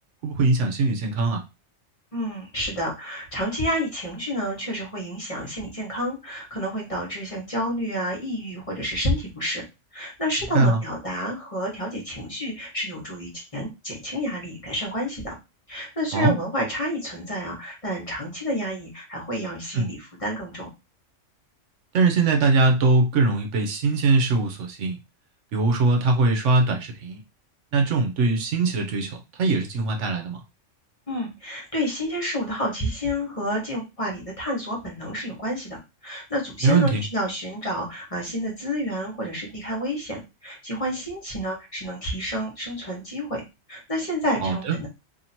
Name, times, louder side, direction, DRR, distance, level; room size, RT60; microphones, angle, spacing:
voice 1, 0.2-1.4 10.5-10.8 16.1-16.3 19.7-19.9 21.9-25.0 25.5-27.2 27.7-29.1 29.4-30.4 36.6-37.0 44.4-44.8, right 3 dB, 75° right, 3 dB, 1.1 m, -21 dB
voice 2, 2.1-9.6 9.9-15.3 15.7-20.7 31.1-43.4 43.7-44.9, equal, 30° left, -2 dB, 1.2 m, -29 dB
2.8 x 2.8 x 4.2 m, 0.26 s
omnidirectional pair, 1.3 m